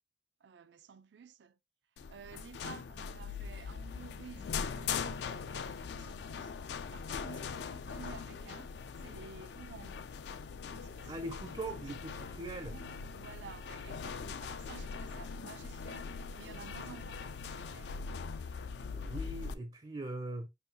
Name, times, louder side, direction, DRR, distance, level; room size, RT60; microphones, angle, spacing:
voice 1, 0.4-1.6 2.1-8.7 9.0-10.1 10.6-11.9 12.6-18.0, right 6 dB, 85° right, 0.4 m, -53 dB
sound 1, 2.0-19.5, left 6 dB, 70° left, 0.4 m, -41 dB
voice 2, 11.1-12.8 18.4-20.5, right 2 dB, 30° right, 0.4 m, -42 dB
5.7 x 2.4 x 2.7 m
head